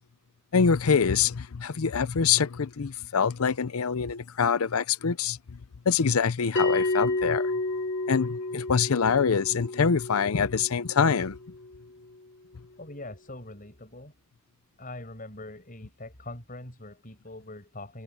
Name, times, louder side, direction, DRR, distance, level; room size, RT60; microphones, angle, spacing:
voice 1, 0.5-5.4 5.9-7.5 8.1-11.4, left 6 dB, 90° left, 0.6 m, -25 dB
Bell, 6.6-11.6, left 2 dB, 60° left, 2.7 m, -30 dB
voice 2, 12.8-14.1 14.8-18.0, left 2 dB, 40° left, 7.8 m, -42 dB
head